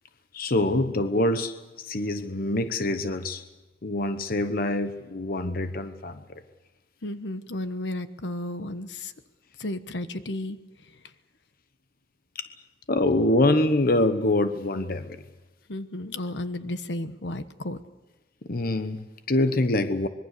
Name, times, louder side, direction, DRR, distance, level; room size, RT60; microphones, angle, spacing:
voice 1, 0.3-3.4 3.8-6.2 12.4-12.5 12.9-15.2 18.4-20.1, left 1 dB, 55° left, 9 dB, 1.1 m, -25 dB
voice 2, 7.0-9.1 9.6-10.6 15.7-17.8, left 1 dB, 80° left, 10 dB, 1.3 m, -33 dB
25.0 x 22.0 x 6.8 m, 1.1 s
head